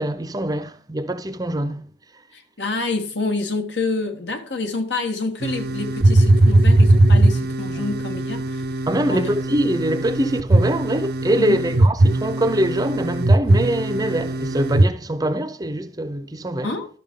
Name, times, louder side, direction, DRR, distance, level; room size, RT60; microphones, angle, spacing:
voice 1, 0.0-1.8 7.8-7.9 8.9-16.7, right 1 dB, 20° right, 0.7 m, -23 dB
voice 2, 2.3-8.8 9.1-9.3 11.4-11.6 16.6-16.9, left 3 dB, 70° left, 1.5 m, -27 dB
sound 1, 5.4-14.9, right 1 dB, 60° right, 0.8 m, -19 dB
12.5 x 5.8 x 3.7 m
head